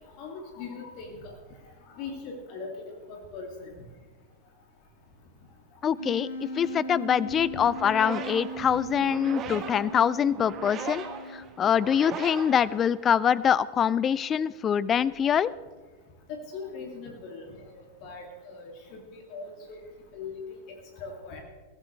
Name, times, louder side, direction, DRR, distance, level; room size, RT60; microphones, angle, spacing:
voice 1, 0.2-1.3 2.0-2.7 3.1-3.7 16.3-18.7 19.1-19.8 20.1-20.4 20.7-21.4, left 4 dB, 45° left, 2 dB, 2.4 m, -40 dB
voice 2, 5.8-11.0 11.3-15.5, left 8 dB, 25° left, 21 dB, 0.5 m, -24 dB
Wind instrument woodwind instrument, 6.0-11.6, equal, 75° left, 3.6 m, -38 dB
sound 1, 7.5-13.4, right 6 dB, 30° right, 1.8 m, -40 dB
22.0 x 15.0 x 3.2 m, 1.4 s
figure-of-eight pair, 90°, 0 cm